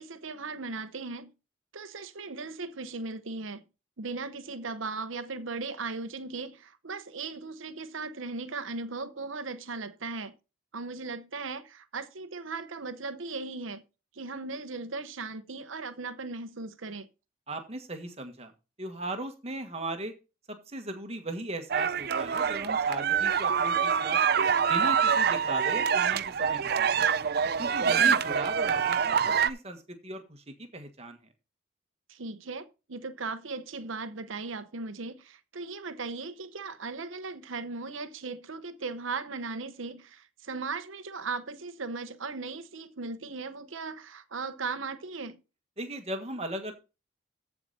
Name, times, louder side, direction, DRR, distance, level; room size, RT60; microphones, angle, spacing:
voice 1, 0.0-1.3 1.7-3.6 4.0-10.3 10.7-13.8 14.1-17.1 27.8-28.2 32.1-45.4, right 4 dB, 85° right, 0.9 m, -37 dB
voice 2, 17.5-18.5 18.8-20.1 20.7-24.2 24.7-27.2 27.6-31.3 45.8-46.7, right 1 dB, 30° right, 1.6 m, -38 dB
sound 1, 21.7-29.5, right 7 dB, 50° right, 0.5 m, -25 dB
14.5 x 4.9 x 4.2 m
head